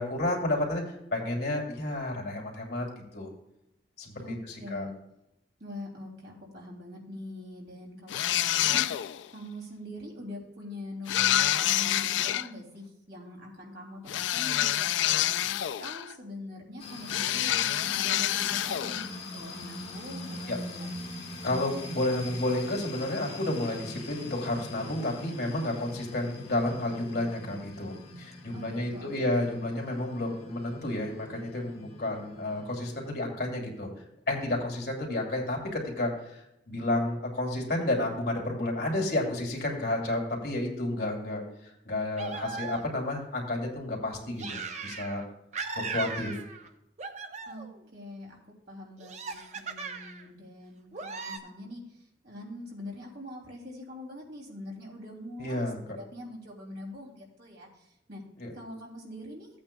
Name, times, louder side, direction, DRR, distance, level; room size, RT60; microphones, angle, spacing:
voice 1, 0.0-2.9 3.1-3.3 4.0-4.9 20.5-20.6 21.4-33.9 34.3-45.2 45.8-46.4 55.4-55.8 58.4-58.5, left 1 dB, 60° left, -1 dB, 2.8 m, -31 dB
voice 2, 4.2-4.9 5.6-8.9 9.3-20.9 28.5-29.3 47.5-48.4 48.7-51.8 52.2-58.2 58.5-59.5, left 1 dB, 65° right, -1 dB, 2.9 m, -43 dB
sound 1, 8.1-9.3 11.1-12.5 14.1-16.1 17.1-19.1, left 12 dB, 85° left, 0.3 m, -27 dB
sound 2, 16.8-33.1, left 2 dB, 35° left, 2.0 m, -43 dB
sound 3, 42.2-43.1 44.4-45.2 45.5-46.7 47.0-47.8 49.0-50.3 50.9-51.4, right 4 dB, 40° right, 0.7 m, -38 dB
15.5 x 8.6 x 2.3 m, 0.87 s
head